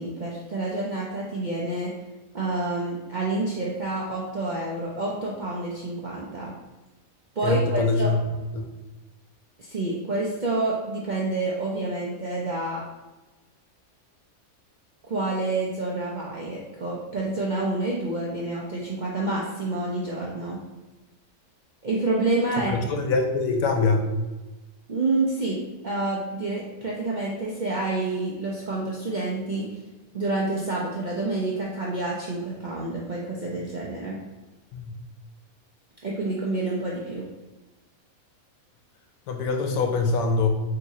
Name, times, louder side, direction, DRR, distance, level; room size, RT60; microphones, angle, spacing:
voice 1, 0.0-1.9 2.3-6.5 7.4-8.1 9.6-12.9 15.0-20.6 21.8-22.7 24.9-29.8 30.1-34.2 36.0-37.3, right 2 dB, 60° right, -4 dB, 0.4 m, -28 dB
voice 2, 7.4-8.2 8.5-8.6 22.9-24.1 34.7-34.9 39.3-40.5, left 4 dB, 75° left, 4 dB, 1.1 m, -23 dB
3.5 x 2.9 x 4.1 m, 1.1 s
omnidirectional pair, 1.5 m